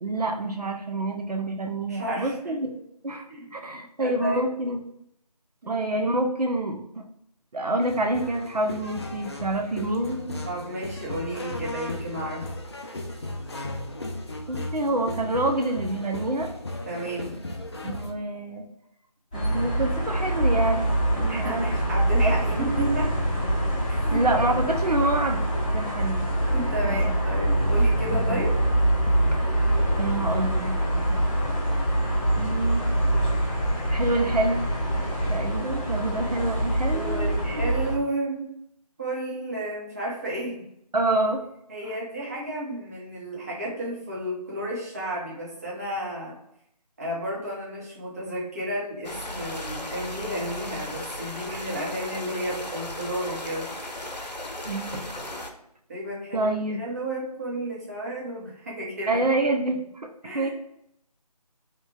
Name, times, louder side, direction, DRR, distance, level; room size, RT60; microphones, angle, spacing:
voice 1, 0.0-3.3 3.5-4.8 5.7-7.0 7.5-10.5 14.5-16.5 17.8-18.7 19.3-20.8 21.1-21.6 22.2-22.3 24.1-25.4 25.7-26.3 26.8-27.1 27.6-27.7 28.1-28.4 29.1-29.4 30.0-31.2 32.4-32.9 33.9-34.6 35.3-37.3 40.9-41.4 54.7-55.4 56.3-56.8 59.1-59.9 60.2-60.5, right 2 dB, 70° right, 3 dB, 0.6 m, -27 dB
voice 2, 1.9-2.5 3.3-3.5 4.0-4.4 5.6-5.8 10.4-12.5 16.9-17.4 21.3-23.1 23.9-24.2 26.5-28.5 36.9-38.5 39.0-40.6 41.7-46.4 47.0-53.7 55.2-55.3 55.9-59.2 60.2-60.5, right 1 dB, 25° right, -5 dB, 0.9 m, -32 dB
sound 1, 7.8-18.1, left 1 dB, 40° left, 0.4 m, -36 dB
sound 2, 19.3-38.0, right 1 dB, 10° left, 0.9 m, -24 dB
sound 3, 49.0-55.5, left 1 dB, 90° left, 0.7 m, -36 dB
2.9 x 2.4 x 3.7 m, 0.74 s
figure-of-eight pair, 160°, 21 cm